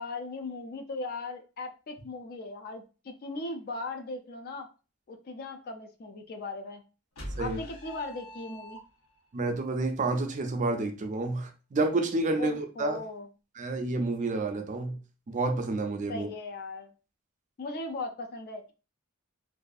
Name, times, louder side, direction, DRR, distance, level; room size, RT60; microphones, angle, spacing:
voice 1, 0.0-4.7 5.1-6.8 7.4-8.8 12.4-13.3 16.1-16.9 17.6-18.7, left 3 dB, 45° left, 6 dB, 0.4 m, -38 dB
sound 1, 7.2-9.3, equal, 80° left, 0.7 m, -42 dB
voice 2, 9.3-13.0 13.6-15.0 15.3-16.3, right 2 dB, 35° right, 6 dB, 0.4 m, -29 dB
2.6 x 2.3 x 2.3 m, 0.33 s
head